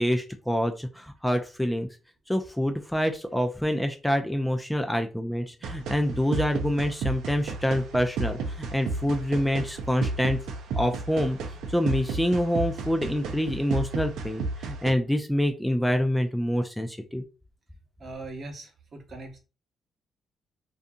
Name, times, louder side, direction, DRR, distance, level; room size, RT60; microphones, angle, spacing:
voice 1, 0.0-1.9 2.3-10.4 10.7-17.2, equal, 5° left, 5 dB, 0.4 m, -26 dB
sound 1, 5.6-14.9, right 3 dB, 85° right, 0.4 m, -33 dB
voice 2, 18.0-19.4, right 2 dB, 50° right, 3 dB, 0.9 m, -40 dB
2.6 x 2.3 x 2.6 m, 0.31 s
cardioid pair, 95°, 0 cm